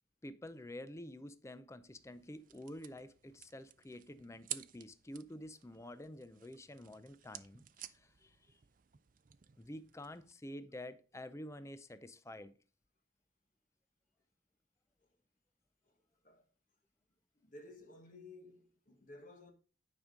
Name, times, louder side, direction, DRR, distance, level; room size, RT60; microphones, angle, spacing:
voice 1, 0.2-8.6 9.6-12.5, left 1 dB, 15° left, 0.5 m, -49 dB
sound 1, 1.9-10.3, right 13 dB, 45° right, 0.5 m, -52 dB
voice 2, 17.4-19.5, left 2 dB, 45° left, 1.2 m, -55 dB
9.8 x 5.2 x 3.7 m
head